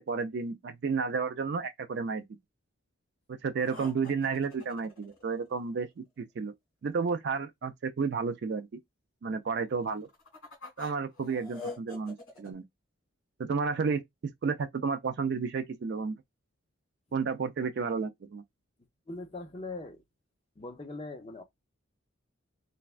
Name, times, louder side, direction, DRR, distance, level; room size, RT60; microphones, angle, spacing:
voice 1, 0.1-2.3 3.3-6.5 6.8-8.7 9.2-10.1 10.8-12.6 13.4-16.2 17.1-18.4, right 5 dB, 50° right, 0.3 m, -32 dB
sound 1, 3.6-5.8 9.9-12.5, left 3 dB, 70° left, 1.5 m, -45 dB
voice 2, 19.1-20.0 20.6-21.4, left 2 dB, 25° left, 0.5 m, -41 dB
3.2 x 2.2 x 2.4 m
head